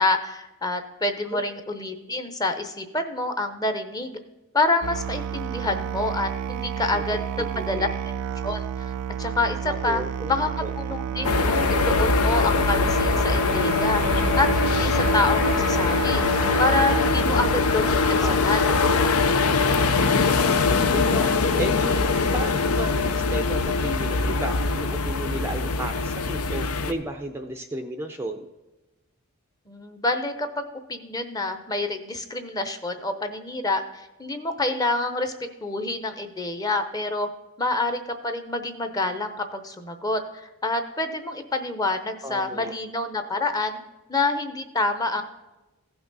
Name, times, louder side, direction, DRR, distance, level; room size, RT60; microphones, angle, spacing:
voice 1, 0.0-4.2 4.5-7.9 8.4-10.0 10.3-10.5 10.8-14.0 14.4-16.2 16.6-18.6 29.7-30.6 30.9-35.3 35.6-37.3 37.6-43.8 44.1-45.2, left 2 dB, 15° left, 8 dB, 0.7 m, -27 dB
Musical instrument, 4.8-17.5, right 8 dB, 90° right, 0.4 m, -30 dB
voice 2, 7.4-7.8 9.6-10.3 10.6-10.7 18.1-19.1 20.9-21.3 21.6-22.0 22.3-28.5 42.2-42.7, right 1 dB, 10° right, 5 dB, 0.5 m, -34 dB
sound 1, 11.2-26.9, left 4 dB, 85° left, 0.7 m, -22 dB
15.5 x 5.9 x 4.0 m, 1.1 s
head